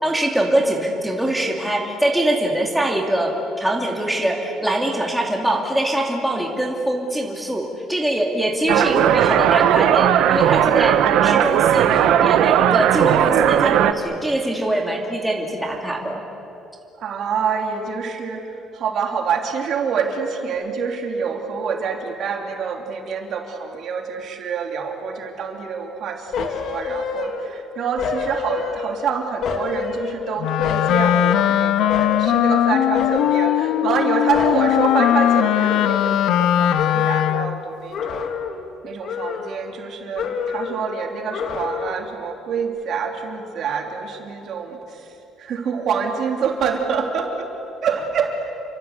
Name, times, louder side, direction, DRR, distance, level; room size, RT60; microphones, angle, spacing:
voice 1, 0.0-16.2, right 1 dB, 5° right, 0 dB, 2.7 m, -23 dB
sound 1, 8.7-13.9, right 10 dB, 70° right, 1.3 m, -16 dB
voice 2, 17.0-38.2 38.8-47.5 47.8-48.5, right 6 dB, 50° right, 3 dB, 3.2 m, -26 dB
sound 2, 26.3-27.6 28.0-29.1 29.4-31.5 31.9-32.5 32.9-34.1 34.3-36.5 36.8-37.4 37.9-38.7 39.0-39.9 40.1-40.9 41.3-42.1 42.5-42.6, left 6 dB, 50° left, 2.4 m, -28 dB
Wind instrument woodwind instrument, 30.4-37.7, left 12 dB, 65° left, 0.8 m, -19 dB
29.0 x 24.5 x 8.3 m, 2.7 s
cardioid pair, 160°, 0 cm